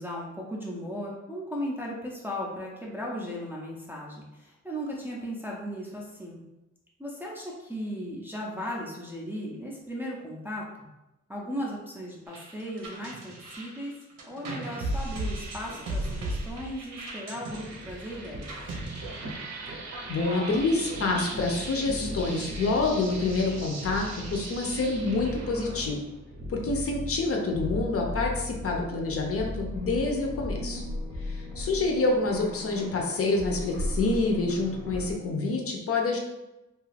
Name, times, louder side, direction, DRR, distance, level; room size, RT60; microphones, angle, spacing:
voice 1, 0.0-6.4 7.0-10.7 11.3-14.0 14.2-18.5, equal, 5° right, -4 dB, 0.4 m, -36 dB
sound 1, 12.3-19.8, right 1 dB, 85° right, 0.8 m, -36 dB
sound 2, 17.5-30.6, equal, 60° right, 0.6 m, -37 dB
voice 2, 20.1-26.0 26.5-30.8 31.2-36.2, left 3 dB, 50° left, 1 dB, 0.5 m, -27 dB
sound 3, 29.7-35.1, left 1 dB, 85° left, 0.6 m, -36 dB
2.7 x 2.3 x 3.2 m, 0.97 s
wide cardioid pair, 150°, 30 cm